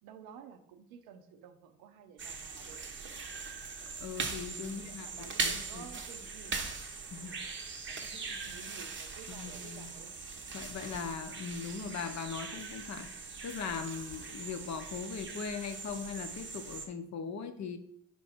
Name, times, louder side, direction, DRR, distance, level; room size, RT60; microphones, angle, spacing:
voice 1, 0.0-2.8 4.6-6.6 7.2-7.4 7.9-10.1, right 7 dB, 70° right, 7 dB, 0.6 m, -52 dB
sound 1, 2.2-16.9, right 4 dB, 30° right, 0.7 m, -41 dB
voice 2, 4.0-5.9 7.1-7.4 9.3-9.9 10.5-17.8, left 6 dB, 45° left, 8 dB, 0.6 m, -40 dB
4.5 x 2.6 x 4.2 m, 0.71 s
hypercardioid pair, 55°, 38 cm